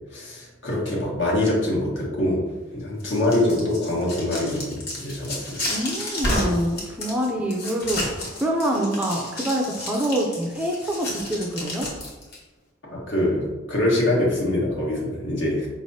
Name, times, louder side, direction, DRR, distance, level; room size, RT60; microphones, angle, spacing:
voice 1, 0.1-2.4 2.7-5.6 12.9-15.7, left 1 dB, 70° left, -4 dB, 1.4 m, -24 dB
sound 1, 3.0-12.4, left 1 dB, 55° left, 1.2 m, -31 dB
voice 2, 5.7-11.9, right 1 dB, 5° right, 0 dB, 0.4 m, -26 dB
5.0 x 3.2 x 2.7 m, 1.2 s
head